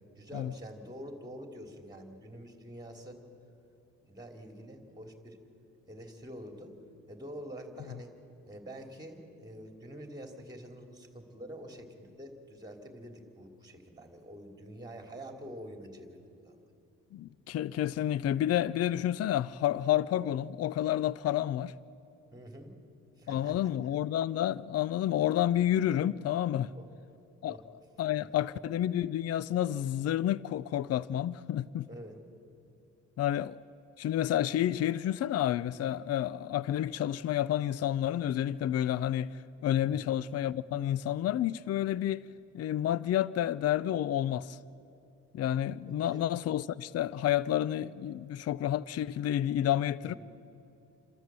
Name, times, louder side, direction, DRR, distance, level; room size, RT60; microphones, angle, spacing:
voice 1, 0.2-3.2 4.1-5.4 5.9-6.7 7.1-8.1 8.5-16.5 22.3-22.7 23.2-23.7 26.7-26.9 27.5-27.6 31.9-32.2 39.9-40.2 46.0-46.2 50.0-50.2, equal, 15° right, 2.9 m, -46 dB
voice 2, 17.1-21.7 23.3-26.7 27.4-27.6 28.0-31.9 33.2-33.6 34.0-42.3 42.5-44.6 45.3-50.1, left 11 dB, 55° left, 0.5 m, -30 dB
28.0 x 13.5 x 7.5 m
cardioid pair, 90°, 30 cm